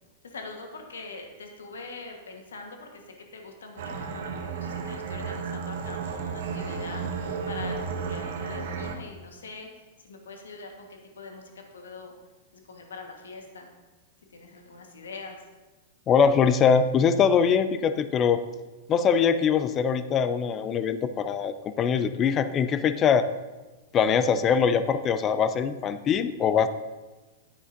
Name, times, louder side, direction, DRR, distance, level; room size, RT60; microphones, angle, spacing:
voice 1, 0.2-3.0 3.3-7.1 7.5-9.7 10.0-12.1 12.5-13.7 14.3-15.4, left 3 dB, 85° left, 3 dB, 1.4 m, -43 dB
sound 1, 3.8-8.9, right 5 dB, 65° right, 1.0 m, -33 dB
voice 2, 16.1-18.4 18.9-23.3 23.9-26.7, left 6 dB, 30° left, 12 dB, 0.5 m, -22 dB
9.4 x 9.0 x 2.7 m, 1.2 s
hypercardioid pair, 110°, 0 cm